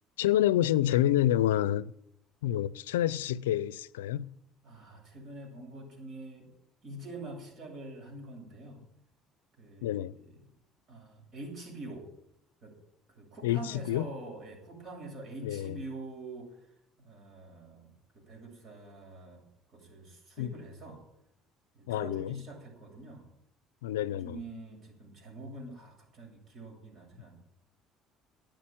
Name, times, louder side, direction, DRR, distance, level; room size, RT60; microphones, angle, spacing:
voice 1, 0.2-1.9 2.4-4.3 9.8-10.1 13.4-14.1 15.4-15.8 20.4-20.5 21.9-22.4 23.8-24.4, left 12 dB, 90° left, 0.4 m, -28 dB
voice 2, 4.6-6.5 6.8-8.8 9.6-10.4 10.9-12.1 12.6-12.7 13.1-16.7 17.0-17.9 18.1-19.4 19.7-21.0 21.7-23.3 24.2-27.4, right 2 dB, 50° right, 7.8 m, -45 dB
12.5 x 9.2 x 8.9 m
hypercardioid pair, 65°, 0 cm